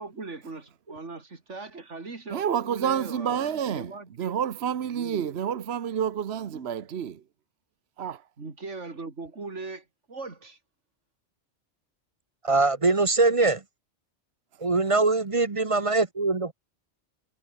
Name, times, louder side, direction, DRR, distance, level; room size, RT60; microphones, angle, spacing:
voice 1, 0.0-4.4 4.9-5.3 6.5-6.8 8.4-10.6, right 3 dB, 90° right, 3.2 m, -40 dB
voice 2, 2.3-3.9 4.2-7.2 8.0-8.2, right 8 dB, 65° right, 1.1 m, -29 dB
voice 3, 12.4-13.6 14.6-16.5, right 3 dB, 30° right, 1.1 m, -22 dB
omnidirectional pair, 1.2 m